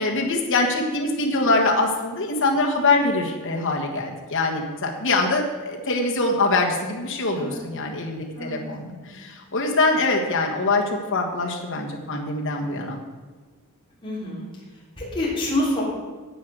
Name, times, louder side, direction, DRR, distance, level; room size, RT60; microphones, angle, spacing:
voice 1, 0.0-13.0, left 2 dB, 60° left, 0 dB, 1.5 m, -23 dB
voice 2, 8.3-8.7 9.0-9.1 14.0-14.5 15.0-15.8, left 1 dB, 20° left, -6 dB, 3.2 m, -28 dB
9.8 x 8.0 x 6.2 m, 1.4 s
head